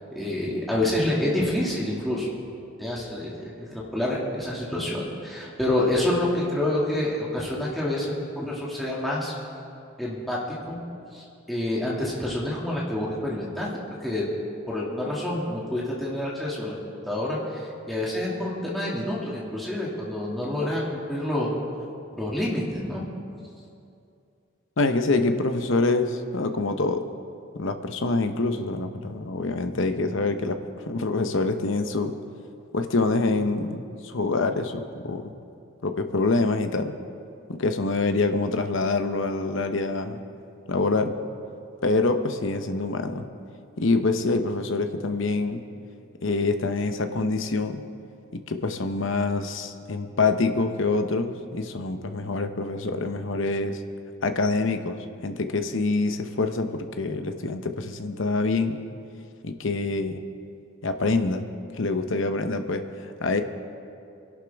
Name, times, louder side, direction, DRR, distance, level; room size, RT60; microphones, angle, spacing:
voice 1, 0.1-2.4 2.8-9.3 10.0-10.4 10.7-10.8 11.1-13.7 14.0-14.3 14.7-16.7 17.1-21.5 22.2-23.0, left 1 dB, ahead, -6 dB, 2.2 m, -28 dB
voice 2, 24.8-27.0 27.5-30.6 30.9-32.1 32.7-35.3 35.8-36.9 37.5-40.2 40.7-41.2 41.8-43.2 43.8-45.6 46.2-47.8 48.3-53.8 54.2-58.8 59.4-60.2 60.8-61.4 61.7-63.4, left 3 dB, 65° left, 7 dB, 0.9 m, -26 dB
24.0 x 11.5 x 3.5 m, 2.5 s
head